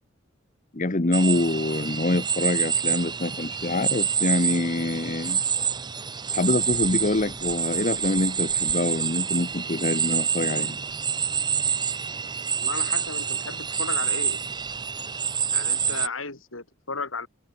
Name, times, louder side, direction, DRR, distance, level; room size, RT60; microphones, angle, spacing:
voice 1, 0.7-5.4 6.3-10.8, left 2 dB, 40° left, 1.1 m, -25 dB
sound 1, 1.1-16.1, right 7 dB, 20° right, 1.1 m, -27 dB
voice 2, 12.5-14.4 15.5-17.3, left 4 dB, 85° left, 5.9 m, -34 dB
head